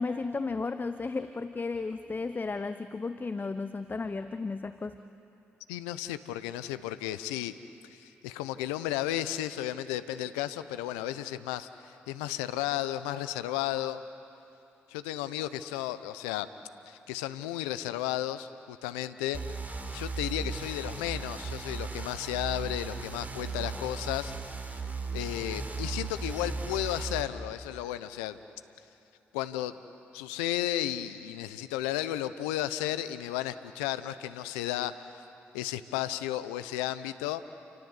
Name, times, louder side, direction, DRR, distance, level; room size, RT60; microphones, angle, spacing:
voice 1, 0.0-5.0, left 4 dB, 35° left, 10 dB, 1.0 m, -34 dB
voice 2, 5.7-7.5 7.9-14.0 14.9-16.5 16.9-19.4 19.9-24.6 25.1-28.4 29.3-29.7 30.1-35.2 35.5-37.4, left 13 dB, 85° left, 13 dB, 0.8 m, -33 dB
sound 1, 19.3-27.2, right 4 dB, 30° right, 4.1 m, -36 dB
29.5 x 24.0 x 8.2 m, 2.7 s
hypercardioid pair, 40°, 6 cm